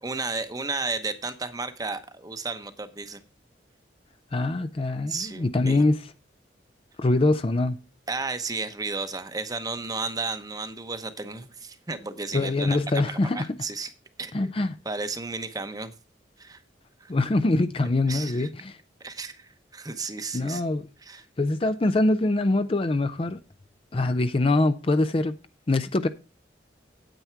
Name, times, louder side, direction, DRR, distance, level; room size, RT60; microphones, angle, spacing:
voice 1, 0.0-3.2 5.1-5.9 8.1-12.8 13.1-13.9 14.2-14.5 14.8-15.9 16.4-16.6 17.0-17.1 18.1-18.5 19.0-20.6 21.0-21.3, right 3 dB, 20° right, 0.9 m, -33 dB
voice 2, 4.3-6.0 7.0-7.8 12.3-13.5 14.3-14.8 17.1-18.8 20.3-20.9 21.4-23.4 23.9-25.4 25.7-26.1, left 2 dB, 30° left, 0.5 m, -24 dB
9.1 x 8.6 x 4.5 m
head